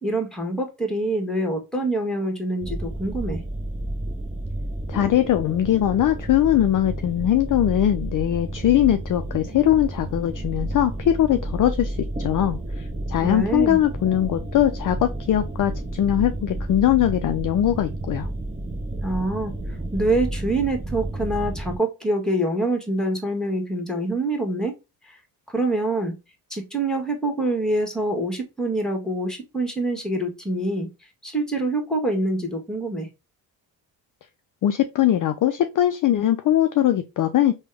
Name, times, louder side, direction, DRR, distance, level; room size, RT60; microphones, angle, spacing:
voice 1, 0.0-3.4 13.2-13.8 19.0-24.7 25.0-25.2 25.5-26.1 26.5-30.9 31.2-33.1, right 2 dB, ahead, 1.2 m, -25 dB
sound 1, 2.6-21.8, right 1 dB, 15° right, 0.8 m, -31 dB
voice 2, 4.9-18.3 34.6-37.5, left 12 dB, 45° left, 0.4 m, -21 dB
3.3 x 2.3 x 3.3 m
supercardioid pair, 50°, 50 cm